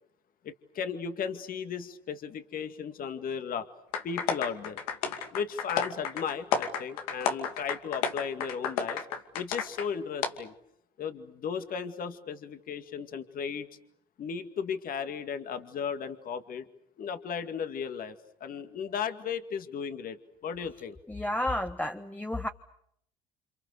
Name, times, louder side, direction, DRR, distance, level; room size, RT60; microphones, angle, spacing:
voice 1, 0.4-3.7 4.0-4.8 5.3-9.0 9.3-10.5 11.0-13.7 14.2-16.7 17.0-18.2 18.4-21.0, left 6 dB, 50° left, 8 dB, 2.2 m, -35 dB
sound 1, 3.9-9.9 10.2-10.3, left 7 dB, 85° left, 2.5 m, -31 dB
voice 2, 21.1-22.5, left 1 dB, 10° left, 6 dB, 1.3 m, -31 dB
29.5 x 27.5 x 6.8 m, 0.72 s
supercardioid pair, 75°, 18 cm